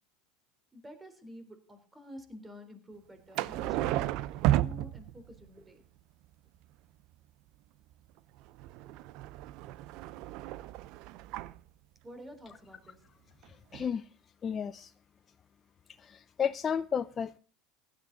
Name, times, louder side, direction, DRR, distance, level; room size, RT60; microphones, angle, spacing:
voice 1, 0.7-4.1 4.6-5.8 8.8-8.9 12.0-13.0, equal, 15° right, 7 dB, 3.5 m, -49 dB
sound 1, 3.3-5.5 8.4-11.6 13.4-13.5 13.7-13.9, right 15 dB, 60° right, 0.6 m, -33 dB
voice 2, 13.5-14.0 14.4-14.9 16.0-17.4, left 7 dB, 30° left, 12 dB, 0.5 m, -33 dB
16.0 x 11.5 x 3.9 m, 0.37 s
hypercardioid pair, 85°, 0 cm